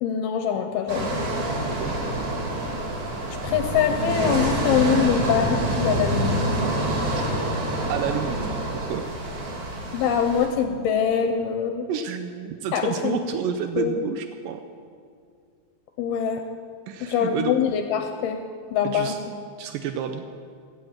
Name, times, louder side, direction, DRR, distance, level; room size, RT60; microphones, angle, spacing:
voice 1, 0.0-1.2 3.4-6.5 9.9-11.9 12.7-13.2 13.8-14.1 16.0-16.4 17.0-18.4 18.7-19.3, left 7 dB, 75° left, 6 dB, 2.6 m, -24 dB
sound 1, 0.9-10.5, right 1 dB, 50° right, 3.3 m, -27 dB
voice 2, 7.9-9.0 11.9-14.6 16.9-17.6 18.8-19.2 19.6-20.2, right 7 dB, 85° right, 8 dB, 1.9 m, -30 dB
16.5 x 11.5 x 7.4 m, 2.2 s
omnidirectional pair, 4.8 m